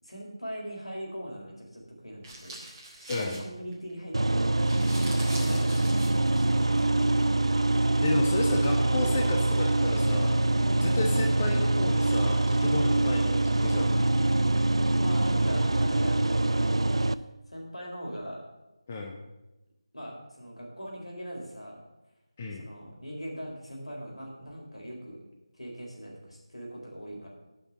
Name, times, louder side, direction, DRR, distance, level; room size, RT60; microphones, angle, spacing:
voice 1, 0.0-2.6 3.0-4.9 5.4-6.0 6.3-6.9 8.1-8.2 14.9-16.3 17.1-18.4 19.9-21.8 22.5-25.2 25.6-27.3, equal, 75° left, -2 dB, 4.3 m, -41 dB
sound 1, 2.2-3.9 4.2-4.3 4.5-7.2, right 2 dB, 10° right, 1.3 m, -43 dB
voice 2, 3.1-3.4 5.4-5.6 8.0-10.4 10.8-13.9 18.9-19.2 22.4-22.6, left 3 dB, 20° left, 2 dB, 0.7 m, -32 dB
sound 2, 4.1-17.1, right 2 dB, 60° right, 0.4 m, -24 dB
9.7 x 6.1 x 8.3 m, 1.0 s
figure-of-eight pair, 165°, 3 cm